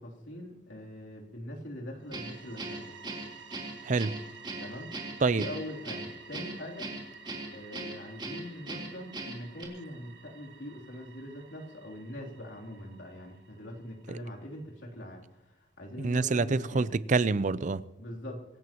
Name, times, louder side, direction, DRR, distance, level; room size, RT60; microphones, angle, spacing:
voice 1, 0.0-2.9 4.6-7.2 7.5-16.9 18.0-18.4, left 1 dB, 80° left, 3.2 m, -43 dB
sound 1, 2.0-14.7, right 6 dB, 70° right, 1.9 m, -52 dB
Guitar, 2.1-9.6, right 2 dB, 25° right, 3.4 m, -40 dB
voice 2, 3.8-4.2 5.2-5.4 14.1-14.2 16.0-17.8, right 3 dB, 40° right, 0.5 m, -27 dB
25.0 x 15.5 x 3.0 m
head